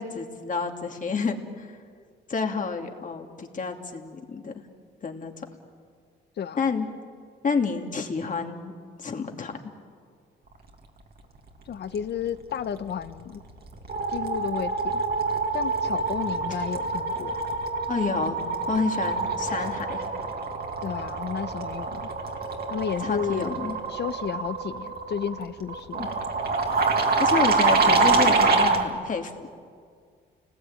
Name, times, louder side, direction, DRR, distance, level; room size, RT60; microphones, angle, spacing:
voice 1, 0.0-1.8 2.3-4.6 5.0-5.5 6.6-6.9 7.4-8.7 9.0-9.5 17.9-18.4 18.7-20.0 23.0-23.8 26.0-26.1 27.2-29.5, left 5 dB, 40° left, 3 dB, 2.8 m, -29 dB
voice 2, 11.7-13.4 14.1-15.0 15.5-17.3 20.8-22.1 22.7-23.5 23.9-26.1, left 8 dB, 60° left, 12 dB, 1.2 m, -32 dB
sound 1, 13.0-13.3 13.6-28.9, right 4 dB, 50° right, 2.8 m, -26 dB
30.0 x 20.0 x 9.0 m, 2.1 s
cardioid pair, 90°, 20 cm